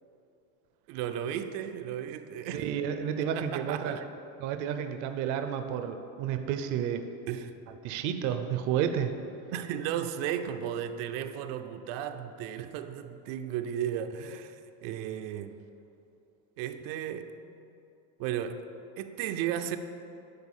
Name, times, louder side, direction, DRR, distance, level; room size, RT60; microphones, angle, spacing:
voice 1, 0.9-2.6 3.2-4.0 7.3-7.5 9.5-15.6 16.6-17.4 18.2-18.7 19.0-19.8, right 10 dB, 85° right, 0.7 m, -35 dB
voice 2, 2.5-4.0 4.4-7.1 7.8-9.1, right 8 dB, 50° right, 0.5 m, -31 dB
10.5 x 4.4 x 7.2 m
cardioid pair, 180°, 40 cm